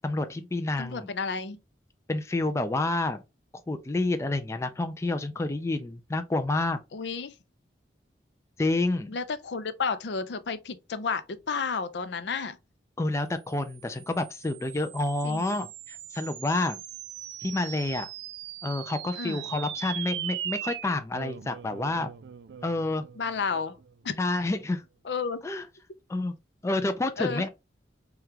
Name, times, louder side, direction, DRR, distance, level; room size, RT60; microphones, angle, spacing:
voice 1, 0.0-1.1 2.1-3.2 3.7-6.8 8.6-9.2 13.0-16.8 17.4-18.1 18.6-22.1 22.6-23.0 24.2-24.8 25.4-25.7 26.1-26.3 26.6-27.5, left 2 dB, 15° left, 0.3 m, -29 dB
voice 2, 0.8-1.6 6.9-7.3 9.1-12.6 15.2-15.5 19.2-19.4 23.2-23.8 24.0-24.1 25.0-25.4 27.2-27.4, left 5 dB, 75° left, 0.5 m, -31 dB
sound 1, 13.7-24.3, right 11 dB, 70° right, 0.4 m, -40 dB
4.9 x 2.3 x 2.9 m
head